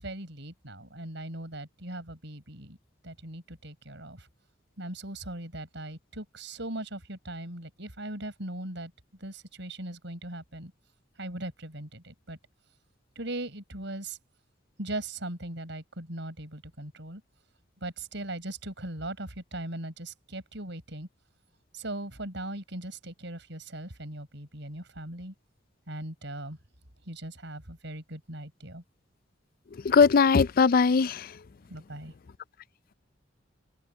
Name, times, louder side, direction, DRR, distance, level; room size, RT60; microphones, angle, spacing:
voice 1, 0.0-2.8 3.0-4.3 4.8-8.9 9.2-10.7 11.2-12.4 13.2-14.2 14.8-17.2 17.8-21.1 21.7-25.3 25.9-26.6 27.1-28.8 31.7-32.1, right 1 dB, 65° right, 7.1 m, -39 dB
voice 2, 29.7-31.4, left 5 dB, 50° left, 0.4 m, -21 dB
open air
head